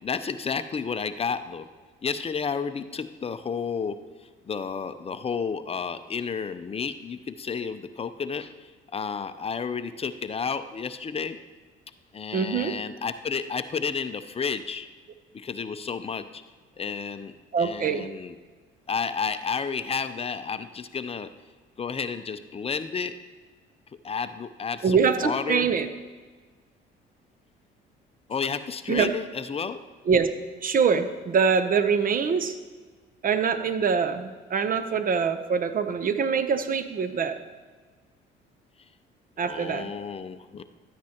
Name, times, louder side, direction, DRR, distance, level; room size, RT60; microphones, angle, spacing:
voice 1, 0.0-1.6 2.0-4.0 4.5-11.4 12.1-14.9 15.3-16.4 16.8-18.3 18.9-21.3 21.8-23.1 24.0-25.7 28.3-29.8 39.4-40.6, left 6 dB, 30° left, 11 dB, 0.6 m, -31 dB
voice 2, 12.3-12.8 17.5-18.1 24.8-25.9 28.9-29.1 30.1-30.3 30.6-32.6 33.2-37.4 39.4-39.9, right 6 dB, 45° right, 10 dB, 0.8 m, -24 dB
13.0 x 9.4 x 3.0 m, 1.4 s
supercardioid pair, 85°, 21 cm